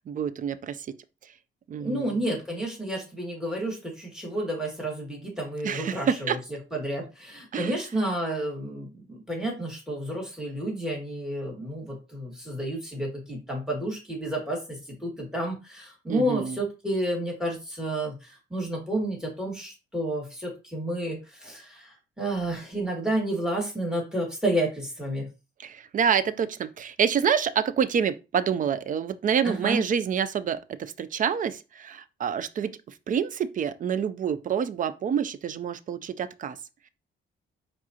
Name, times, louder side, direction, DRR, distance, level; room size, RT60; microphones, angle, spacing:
voice 1, 0.1-0.8 1.7-2.2 5.6-6.4 7.5-7.7 16.1-16.6 25.6-32.7 33.1-36.6, right 7 dB, 40° right, 0.4 m, -27 dB
voice 2, 1.8-6.4 6.7-25.3 29.4-29.8, right 1 dB, 5° right, 2.1 m, -30 dB
4.8 x 3.6 x 2.8 m
cardioid pair, 90°, 20 cm